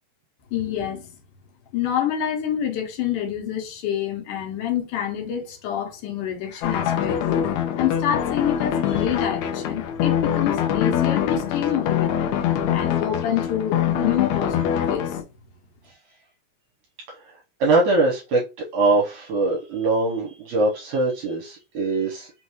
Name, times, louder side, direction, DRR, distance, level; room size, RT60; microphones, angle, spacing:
voice 1, 0.5-1.0 1.7-7.4 7.8-12.3 12.7-15.2, left 10 dB, 70° left, 2.3 m, -27 dB
sound 1, 6.6-15.2, left 9 dB, 85° left, 1.6 m, -24 dB
voice 2, 17.6-18.4 18.7-22.3, right 2 dB, 70° right, 2.3 m, -22 dB
5.4 x 2.5 x 3.0 m
omnidirectional pair, 4.1 m